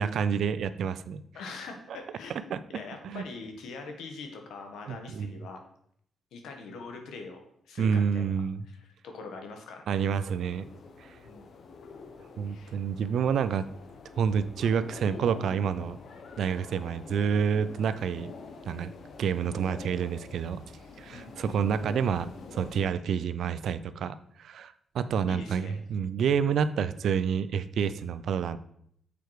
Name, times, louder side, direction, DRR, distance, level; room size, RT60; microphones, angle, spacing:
voice 1, 0.0-1.2 2.5-2.6 3.0-3.2 4.9-5.3 7.8-8.6 9.9-10.7 11.0-11.1 12.4-13.7 14.2-16.0 16.4-18.3 18.7-18.9 19.2-20.6 21.0-28.6, right 7 dB, 70° right, 14 dB, 0.4 m, -28 dB
voice 2, 1.3-5.6 6.3-8.3 8.7-9.8 11.2-11.4 12.4-12.7 21.1-21.6 25.3-25.8, left 4 dB, 90° left, 4 dB, 1.3 m, -43 dB
sound 1, 10.0-22.9, left 4 dB, 65° left, 0.9 m, -46 dB
6.8 x 4.6 x 4.7 m, 0.69 s
cardioid pair, 100°, 0 cm